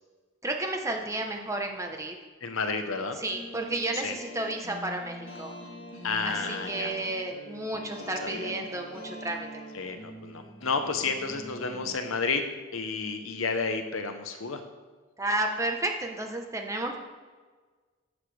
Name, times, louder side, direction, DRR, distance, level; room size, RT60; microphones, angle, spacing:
voice 1, 0.4-2.2 3.2-5.5 6.2-9.6 15.2-17.0, right 2 dB, 15° right, 3 dB, 0.9 m, -32 dB
voice 2, 2.4-3.2 3.9-4.1 6.0-6.9 8.2-8.5 9.7-12.4 12.7-14.6, left 4 dB, 85° left, 7 dB, 0.9 m, -31 dB
sound 1, 3.1-11.9, equal, 65° left, 2.1 m, -43 dB
11.0 x 7.4 x 3.3 m, 1.4 s
head